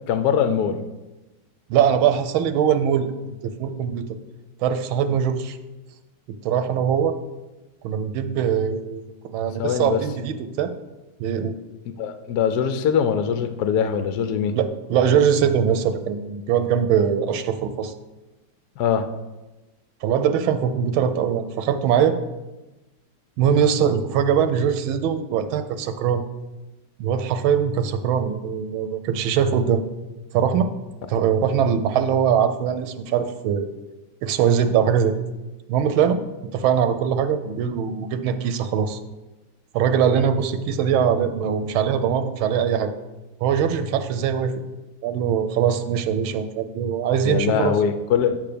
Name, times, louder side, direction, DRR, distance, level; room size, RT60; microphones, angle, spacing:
voice 1, 0.1-0.8 9.6-10.0 12.0-14.6 18.8-19.1 47.2-48.5, left 7 dB, 70° left, 9 dB, 1.0 m, -22 dB
voice 2, 1.7-4.0 4.6-5.6 6.4-7.2 7.8-9.0 9.3-10.7 11.2-11.5 14.5-17.9 20.0-22.2 23.4-26.2 27.0-29.8 30.3-30.7 31.1-33.7 34.2-35.1 35.7-36.2 36.5-39.0 39.7-42.9 43.4-44.5 45.0-47.7, right 8 dB, 85° right, 9 dB, 1.5 m, -21 dB
9.7 x 3.5 x 6.8 m, 1.1 s
omnidirectional pair, 2.2 m